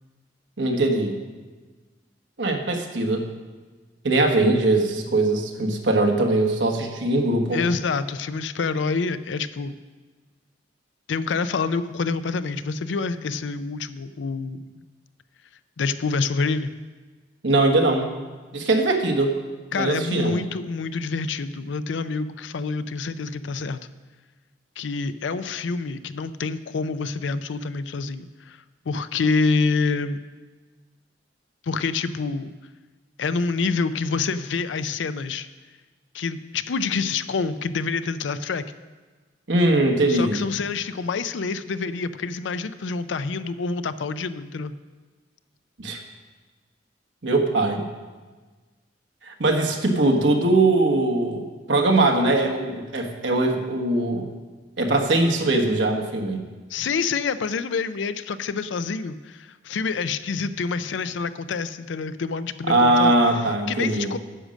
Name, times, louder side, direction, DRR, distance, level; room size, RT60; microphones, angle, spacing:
voice 1, 0.6-1.2 2.4-3.3 4.0-7.6 17.4-18.1 18.5-19.4 19.7-20.4 39.5-40.4 45.8-46.0 47.2-47.8 49.2-54.3 54.8-56.4 62.7-64.1, right 2 dB, 80° right, 3 dB, 1.3 m, -21 dB
voice 2, 7.5-9.8 11.1-14.8 15.8-16.7 19.7-23.8 24.8-28.6 28.9-30.2 31.6-32.5 33.2-35.5 36.1-38.6 40.1-44.7 56.7-63.2 63.7-64.2, left 4 dB, 80° left, 13 dB, 0.5 m, -27 dB
9.9 x 6.4 x 6.3 m, 1.3 s
head